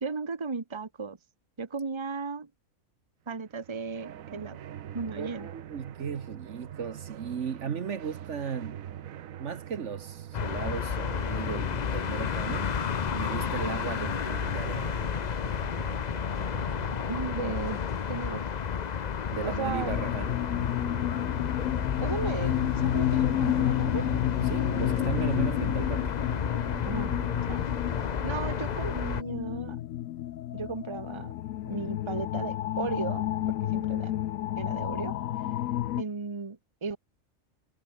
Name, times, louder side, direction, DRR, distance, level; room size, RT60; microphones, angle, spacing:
voice 1, 0.0-1.2 1.6-2.5 3.3-4.6 4.9-5.5 17.1-17.8 18.1-18.4 19.4-19.9 22.0-24.1 26.8-27.1 27.5-27.7 28.2-29.8 30.5-31.3 31.6-34.1 34.6-35.2 36.0-37.0, right 4 dB, 20° right, 1.2 m, -35 dB
sound 1, 3.3-19.1, right 10 dB, 85° right, 1.3 m, -44 dB
voice 2, 5.2-8.9 9.4-12.7 13.1-14.9 19.3-20.3 24.4-26.2, right 7 dB, 60° right, 1.4 m, -36 dB
sound 2, 10.3-29.2, left 7 dB, 45° left, 0.6 m, -31 dB
sound 3, 19.8-36.0, left 13 dB, 80° left, 1.0 m, -31 dB
omnidirectional pair, 1.4 m